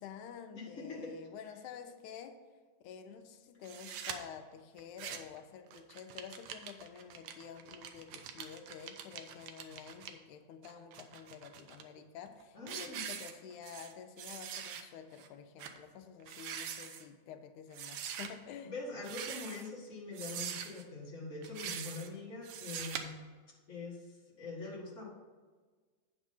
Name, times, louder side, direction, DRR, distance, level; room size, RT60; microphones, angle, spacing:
voice 1, 0.0-2.4 2.8-18.7, left 7 dB, 85° left, 7 dB, 2.1 m, -49 dB
voice 2, 0.5-1.1 12.5-13.0 18.6-23.2 23.7-25.1, left 3 dB, 30° left, -4 dB, 1.7 m, -44 dB
sound 1, 3.6-4.2 4.8-5.4 5.7-10.1 10.6-11.8 12.3-12.4 12.7-13.9 14.2-14.8 15.2-15.3 15.6-15.8 16.2-17.0 17.7-18.3 19.0-19.7 20.1-20.8 21.4-22.1 22.4-23.0, right 9 dB, 75° right, 1.8 m, -43 dB
8.6 x 5.3 x 5.5 m, 1.4 s
omnidirectional pair, 3.4 m